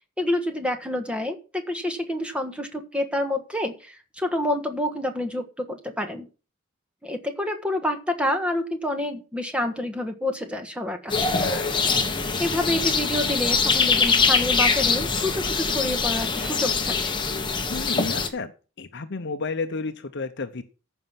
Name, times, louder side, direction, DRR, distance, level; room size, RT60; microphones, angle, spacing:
voice 1, 0.2-6.3 7.0-11.4 12.4-17.2, left 1 dB, 5° right, 6 dB, 1.5 m, -28 dB
sound 1, 11.1-18.3, left 5 dB, 25° left, 1.3 m, -23 dB
voice 2, 11.3-12.0 17.7-18.5 18.8-20.6, left 4 dB, 60° left, 8 dB, 0.8 m, -32 dB
14.5 x 5.5 x 5.8 m, 0.35 s
head